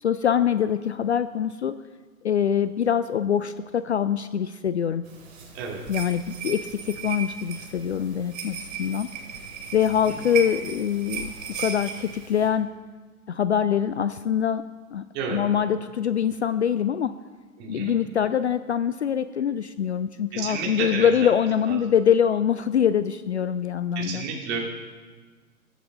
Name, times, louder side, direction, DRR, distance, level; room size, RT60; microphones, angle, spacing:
voice 1, 0.0-1.8 2.2-5.0 5.9-9.1 9.7-12.7 13.3-14.6 14.9-15.0 15.3-17.1 17.7-24.2, left 8 dB, 50° left, 14 dB, 0.5 m, -24 dB
sound 1, 5.1-12.5, right 6 dB, 55° right, 3.1 m, -36 dB
voice 2, 17.6-17.9 20.3-21.1 21.7-21.8 23.9-24.6, right 5 dB, 20° right, -1 dB, 2.5 m, -31 dB
22.0 x 8.1 x 3.8 m, 1.4 s
figure-of-eight pair, 120°, 45 cm